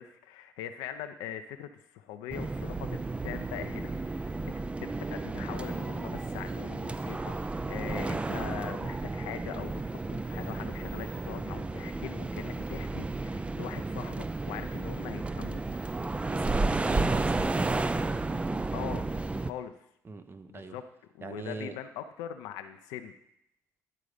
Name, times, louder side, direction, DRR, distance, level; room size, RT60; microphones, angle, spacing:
voice 1, 0.0-4.5 4.8-15.6 18.7-19.0 19.4-19.7 20.5-20.8 21.1-23.1, left 10 dB, 85° left, 8 dB, 0.5 m, -42 dB
sound 1, 2.3-19.5, right 3 dB, 15° right, 0.4 m, -32 dB
voice 2, 16.3-17.7 20.0-20.8 21.2-21.8, right 3 dB, 35° right, 10 dB, 0.8 m, -40 dB
11.0 x 3.8 x 4.9 m, 0.76 s
supercardioid pair, 65°, 7 cm